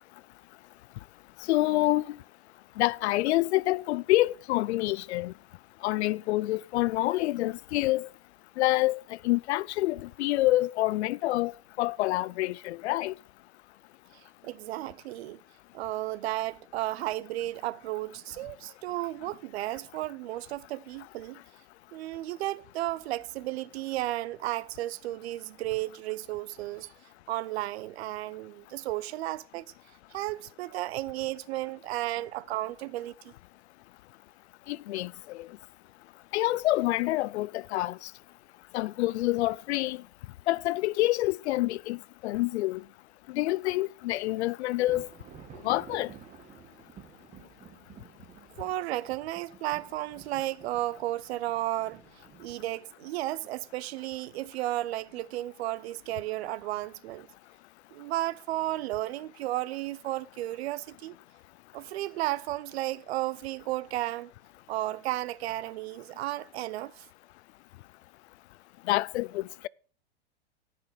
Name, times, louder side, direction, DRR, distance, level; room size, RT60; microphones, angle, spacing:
voice 1, 1.5-2.2 2.8-5.3 5.8-8.1 8.6-11.5 11.8-13.1 34.7-35.5 36.3-38.1 38.7-40.0 40.5-42.0 42.2-42.8 43.3-45.1 45.6-46.1 68.9-69.7, left 17 dB, 70° left, 0.5 m, -27 dB
voice 2, 14.4-15.4 15.7-21.4 21.9-26.9 27.3-29.7 30.1-33.3 48.6-52.0 52.4-57.3 57.9-61.1 61.7-64.3 64.7-67.1, right 16 dB, 65° right, 0.6 m, -33 dB
sound 1, 44.3-52.8, right 7 dB, 20° right, 1.4 m, -52 dB
18.0 x 6.0 x 5.0 m
hypercardioid pair, 135°, 34 cm